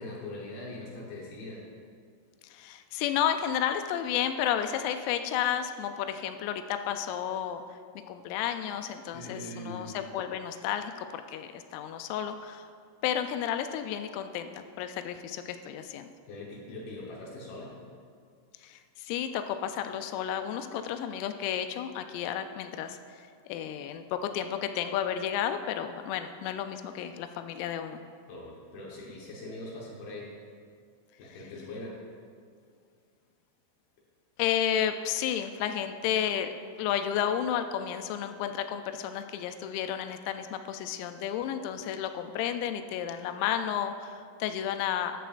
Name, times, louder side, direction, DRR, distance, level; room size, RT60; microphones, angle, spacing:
voice 1, 0.0-1.6 9.1-9.9 16.2-17.7 28.3-30.3 31.2-32.0, left 2 dB, 70° left, -4 dB, 2.4 m, -41 dB
voice 2, 2.5-7.6 8.1-12.7 13.0-16.1 18.6-28.0 34.4-36.5 36.8-45.2, left 9 dB, 85° left, 8 dB, 3.3 m, -32 dB
14.0 x 11.0 x 2.5 m, 2.2 s
omnidirectional pair, 6.0 m